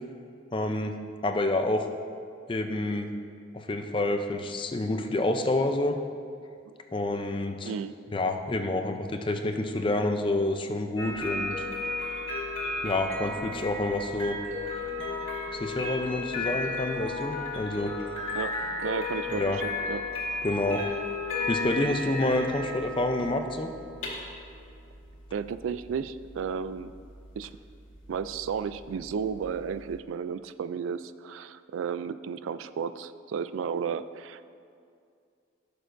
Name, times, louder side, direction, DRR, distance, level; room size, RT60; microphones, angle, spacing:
voice 1, 0.5-0.9 1.2-1.9 2.5-3.1 3.5-6.0 6.9-7.7 8.1-11.6 12.8-14.4 15.5-17.9 19.3-19.6 20.4-20.8 21.5-23.7, left 2 dB, 25° left, 6 dB, 0.5 m, -28 dB
voice 2, 7.6-8.0 18.3-20.0 25.3-26.9 27.4-27.5 28.1-34.5, right 6 dB, 85° right, 13 dB, 0.3 m, -33 dB
sound 1, 11.0-30.0, left 3 dB, 85° left, 2.0 m, -34 dB
15.0 x 6.8 x 2.6 m, 2.4 s
head